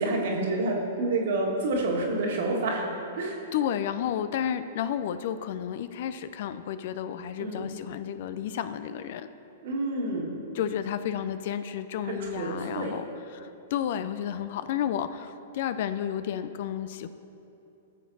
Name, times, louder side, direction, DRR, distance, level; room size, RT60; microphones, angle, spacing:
voice 1, 0.0-2.9 3.1-3.4 7.4-7.7 9.6-10.4 12.0-13.0, right 2 dB, 60° right, -2 dB, 1.7 m, -28 dB
voice 2, 3.5-9.3 10.5-13.0 13.3-17.1, left 9 dB, 55° left, 12 dB, 0.4 m, -31 dB
14.5 x 7.4 x 2.8 m, 2.8 s
figure-of-eight pair, 105°, 0 cm